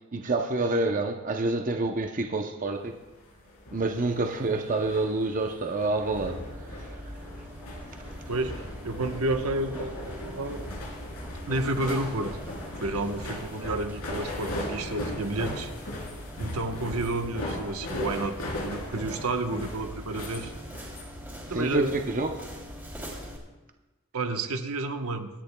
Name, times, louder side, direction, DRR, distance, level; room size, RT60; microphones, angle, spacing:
voice 1, 0.1-3.0 3.7-7.0 21.5-22.5, right 2 dB, 35° right, 4 dB, 0.7 m, -28 dB
sound 1, 3.1-21.0, left 1 dB, 85° left, 3.2 m, -38 dB
sound 2, 6.1-23.4, equal, 10° right, 3.0 m, -42 dB
voice 2, 8.3-10.6 11.5-12.4 12.8-15.7 16.4-20.5 21.5-22.0 24.1-25.3, right 2 dB, 75° right, 5 dB, 1.0 m, -30 dB
25.5 x 10.0 x 2.2 m, 1.1 s
head